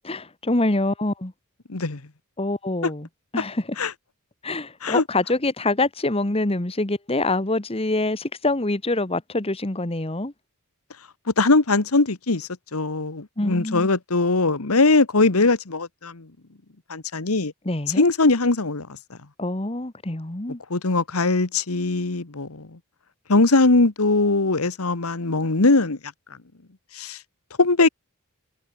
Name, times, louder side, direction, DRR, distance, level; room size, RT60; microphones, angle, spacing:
voice 1, 0.0-1.3 2.4-3.1 3.3-3.7 4.4-10.3 13.4-13.9 17.6-18.0 19.4-20.6, left 2 dB, 25° left, 1.4 m, -25 dB
voice 2, 1.7-2.0 3.8-3.9 4.8-5.0 11.4-16.3 16.9-17.5 18.0-19.2 20.7-22.8 23.3-26.0 26.9-27.2 27.6-27.9, left 3 dB, 80° left, 1.5 m, -21 dB
head